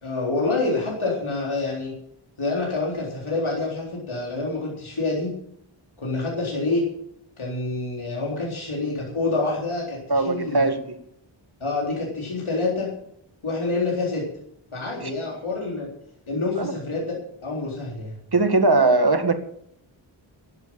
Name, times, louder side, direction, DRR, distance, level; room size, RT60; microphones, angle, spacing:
voice 1, 0.0-1.9 2.4-5.3 6.0-6.9 7.4-10.7 11.6-12.9 13.4-14.3 14.7-15.9 16.3-17.1 17.4-18.2, left 3 dB, 80° left, -3 dB, 4.0 m, -27 dB
voice 2, 10.1-11.0 15.0-15.1 16.6-16.7 18.3-19.3, right 3 dB, 50° right, 8 dB, 1.9 m, -20 dB
12.0 x 11.0 x 7.3 m, 0.70 s
wide cardioid pair, 60°, 48 cm